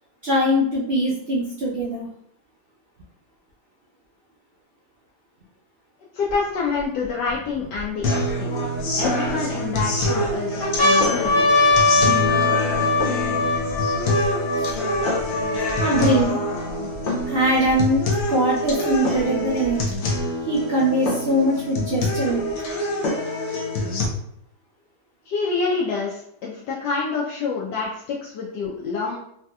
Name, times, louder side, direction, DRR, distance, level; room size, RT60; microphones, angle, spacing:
voice 1, 0.2-2.1 14.6-14.7 15.8-16.4 17.3-19.8 20.5-22.4, right 1 dB, 70° right, -5 dB, 0.5 m, -22 dB
voice 2, 6.1-8.5 8.9-11.4 25.3-29.2, left 4 dB, 85° left, -4 dB, 1.2 m, -27 dB
sound 1, 6.3-6.4 7.0-8.3 9.0-9.8 10.2-10.3 10.6-16.2 16.9-17.0 17.2-18.2 19.2-20.2, left 3 dB, 30° left, 1.4 m, -22 dB
sound 2, 8.0-24.0, left 1 dB, 65° left, 0.7 m, -25 dB
3.2 x 2.8 x 2.2 m, 0.72 s
omnidirectional pair, 1.8 m